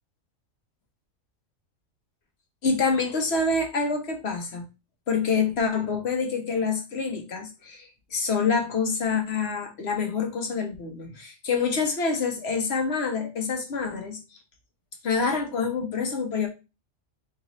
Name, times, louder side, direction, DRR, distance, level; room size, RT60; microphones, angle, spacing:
voice 1, 2.6-4.6 5.1-14.2 15.0-16.5, left 4 dB, 55° left, 3 dB, 1.1 m, -26 dB
3.9 x 3.0 x 3.0 m, 0.28 s
omnidirectional pair, 1.4 m